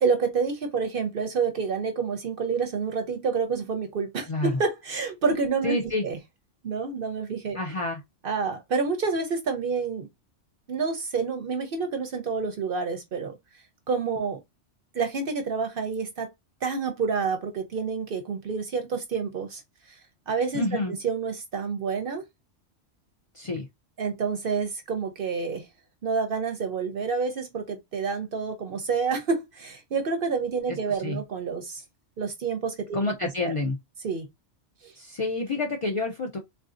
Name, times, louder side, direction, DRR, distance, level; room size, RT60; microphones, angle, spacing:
voice 1, 0.0-5.7 6.0-6.2 6.6-7.6 8.2-10.1 10.7-13.4 13.9-14.4 14.9-16.3 16.6-19.6 19.9-20.0 20.3-22.2 24.0-25.7 26.0-31.8 32.2-33.5 34.0-34.3 34.8-34.9, right 5 dB, 55° right, 0.7 m, -28 dB
voice 2, 5.6-6.1 7.5-8.0 20.5-20.9 23.3-23.7 30.9-31.2 32.9-33.8 35.0-36.4, left 2 dB, 55° left, 0.3 m, -28 dB
3.6 x 2.6 x 2.5 m
omnidirectional pair, 1.2 m